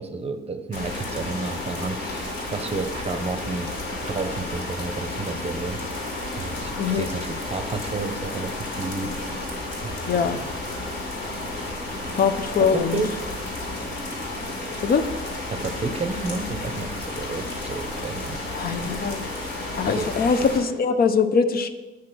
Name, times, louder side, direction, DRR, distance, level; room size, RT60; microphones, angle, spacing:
voice 1, 0.0-3.7 4.0-5.8 6.3-9.2 9.8-10.4 12.6-13.1 15.5-16.9 17.1-18.4 19.9-20.1, right 3 dB, 30° right, 8 dB, 0.6 m, -31 dB
sound 1, 0.7-20.6, left 2 dB, 70° left, 1.8 m, -32 dB
voice 2, 6.8-7.1 10.1-10.4 12.1-13.0 14.8-15.0 18.5-19.3 19.8-21.7, left 6 dB, 50° left, 10 dB, 0.5 m, -22 dB
8.3 x 3.2 x 6.0 m, 1.2 s
cardioid pair, 90°, 20 cm